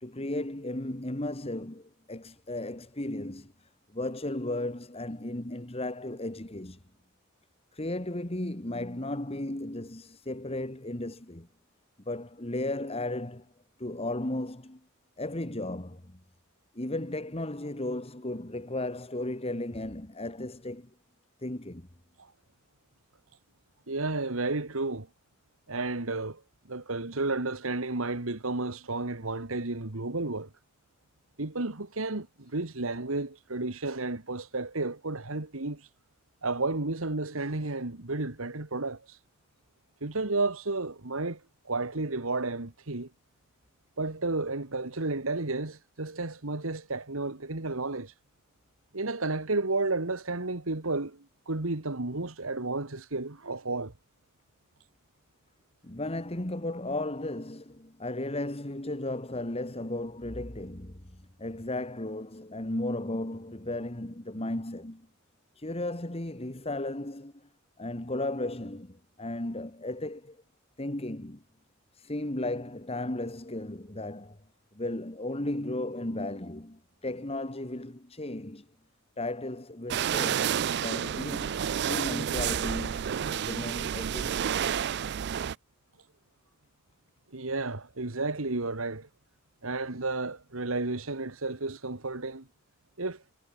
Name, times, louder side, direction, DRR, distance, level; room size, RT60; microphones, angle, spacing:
voice 1, 0.0-3.5 3.9-6.8 7.7-11.5 12.1-13.5 13.8-14.8 15.2-16.2 16.8-20.9 21.4-21.9 55.8-65.1 65.6-67.3 67.8-70.4 70.8-71.4 72.0-74.4 74.7-78.7 79.2-80.6 80.8-84.5, left 1 dB, 30° left, 2.0 m, -35 dB
voice 2, 23.9-25.1 25.7-26.4 26.7-30.5 31.4-35.9 36.4-39.2 40.0-43.1 44.0-48.1 48.9-53.9 87.3-89.1 89.6-92.5 93.0-93.2, right 3 dB, 85° right, 2.0 m, -32 dB
sound 1, 79.9-85.6, right 8 dB, 55° right, 0.4 m, -30 dB
head